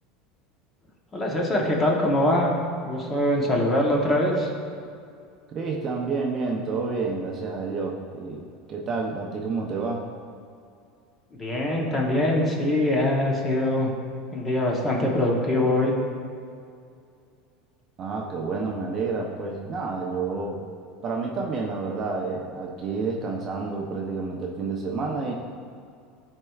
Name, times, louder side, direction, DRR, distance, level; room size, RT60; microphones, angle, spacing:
voice 1, 1.1-2.5 2.8-4.5 11.4-13.9 14.3-15.9, left 1 dB, 15° left, -1 dB, 0.9 m, -23 dB
voice 2, 5.5-10.1 18.0-20.6 21.0-25.3, right 4 dB, 25° right, 0 dB, 0.6 m, -29 dB
13.0 x 4.4 x 2.3 m, 2.3 s
supercardioid pair, 165°, 0 cm